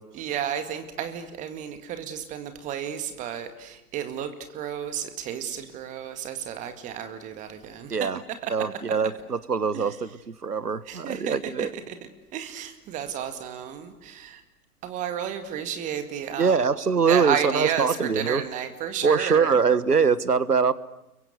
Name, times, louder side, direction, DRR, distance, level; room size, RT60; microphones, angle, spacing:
voice 1, 0.1-7.9 8.4-8.8 9.7-10.0 10.8-14.4 14.8-19.6, right 9 dB, 15° right, 9 dB, 2.0 m, -32 dB
voice 2, 8.5-11.7 16.4-18.4 19.0-20.7, right 5 dB, 75° right, 18 dB, 1.4 m, -23 dB
30.0 x 23.5 x 8.2 m, 0.94 s
figure-of-eight pair, 125°, 47 cm